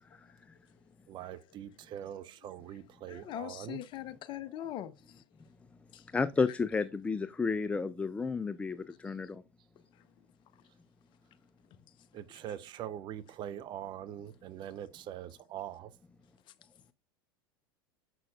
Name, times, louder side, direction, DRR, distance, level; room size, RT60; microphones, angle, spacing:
voice 1, 0.1-0.8 1.2-1.4 2.4-2.8 3.1-5.5 5.9-6.1 6.5-6.6 8.2-8.3 8.9-9.0 9.2-9.3 9.9-10.3 10.5-10.7 11.7-12.1 12.5-12.6 16.4-16.6, left 12 dB, 40° left, 0.8 m, -45 dB
voice 2, 1.1-3.8 9.1-9.2 12.1-16.0, right 11 dB, 40° right, 0.6 m, -43 dB
voice 3, 6.1-9.4, left 4 dB, 10° left, 0.3 m, -31 dB
7.5 x 6.1 x 2.3 m
figure-of-eight pair, 80°, 13 cm